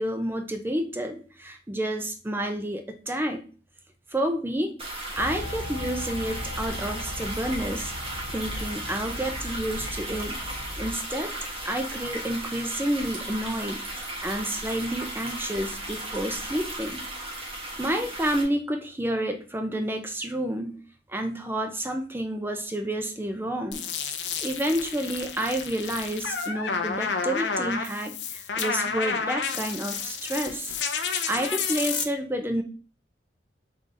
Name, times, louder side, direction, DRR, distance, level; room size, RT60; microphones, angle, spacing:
voice 1, 0.0-3.4 4.1-4.7 5.2-7.9 8.3-10.4 10.8-11.3 11.6-13.8 14.2-17.0 17.4-20.8 21.1-23.8 24.4-30.7 31.3-32.6, right 1 dB, 15° right, 5 dB, 0.5 m, -30 dB
sound 1, 4.8-18.4, right 1 dB, 35° right, 1.3 m, -36 dB
sound 2, 5.2-10.9, left 1 dB, 55° left, 0.8 m, -37 dB
sound 3, 23.7-32.0, left 5 dB, 90° left, 0.6 m, -30 dB
3.8 x 3.4 x 3.8 m, 0.38 s
head